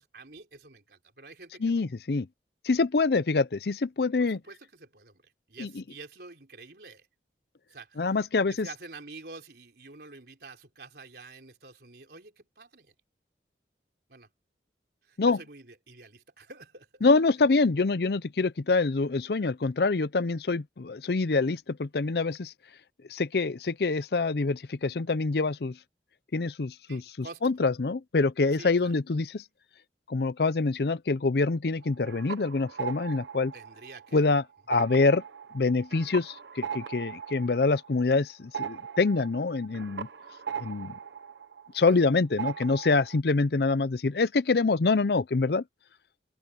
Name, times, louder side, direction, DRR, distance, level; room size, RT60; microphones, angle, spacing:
voice 1, 0.0-1.8 4.2-7.1 7.7-8.1 8.5-12.9 14.1-14.3 15.0-17.0 26.9-27.5 28.4-28.9 33.5-34.2 41.8-42.1, right 3 dB, 65° right, 4.0 m, -48 dB
voice 2, 1.6-2.3 2.6-4.4 5.6-5.7 8.0-8.7 15.2-15.4 17.0-22.5 23.1-25.7 26.3-27.0 27.4-29.4 30.1-33.5 34.1-35.2 35.5-40.1 40.6-40.9 41.7-45.6, left 3 dB, 60° left, 0.6 m, -25 dB
sound 1, 31.8-34.3 34.6-42.1 42.4-43.2, right 7 dB, 90° right, 0.9 m, -39 dB
head